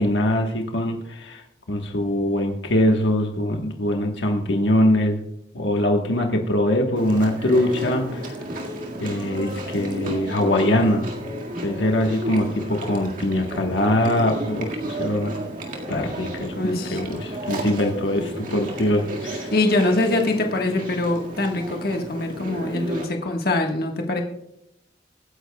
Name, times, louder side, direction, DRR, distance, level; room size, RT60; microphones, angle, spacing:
voice 1, 0.0-5.2 5.5-8.3 9.0-11.1 11.6-15.3 15.9-19.5, left 1 dB, 80° left, 3 dB, 1.3 m, -22 dB
Chewing mastication, 7.0-23.1, right 1 dB, 50° right, 1.9 m, -32 dB
voice 2, 16.5-17.0 19.5-24.2, left 2 dB, 55° left, 2 dB, 1.5 m, -23 dB
25.0 x 9.9 x 2.3 m, 0.82 s
head